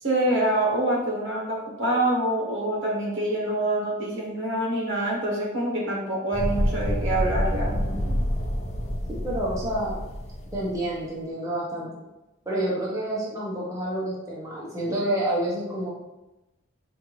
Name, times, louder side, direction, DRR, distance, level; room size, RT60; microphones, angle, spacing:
voice 1, 0.0-8.1, right 1 dB, 60° right, -3 dB, 1.1 m, -26 dB
sound 1, 6.3-10.8, equal, 35° left, 0.5 m, -28 dB
voice 2, 9.1-10.0 10.5-11.9 12.5-15.9, right 1 dB, 15° right, -6 dB, 0.7 m, -28 dB
4.9 x 2.5 x 3.0 m, 1.0 s
head